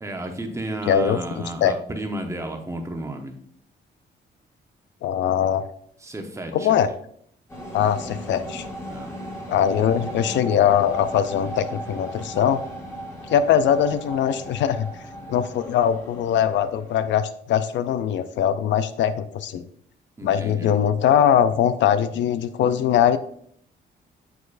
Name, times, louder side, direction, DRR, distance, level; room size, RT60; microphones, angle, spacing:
voice 1, 0.0-3.4 6.0-6.7 8.9-9.1 20.2-20.8, right 1 dB, 15° right, 4 dB, 0.9 m, -32 dB
voice 2, 0.9-1.2 1.6-1.7 5.0-5.6 6.5-6.9 7.7-8.6 9.5-12.6 13.3-14.9 15.3-19.6 20.2-23.2, left 9 dB, 85° left, 12 dB, 0.5 m, -21 dB
sound 1, 7.5-17.1, right 1 dB, 15° left, 1.8 m, -36 dB
6.9 x 6.5 x 2.5 m, 0.65 s
cardioid pair, 125°, 18 cm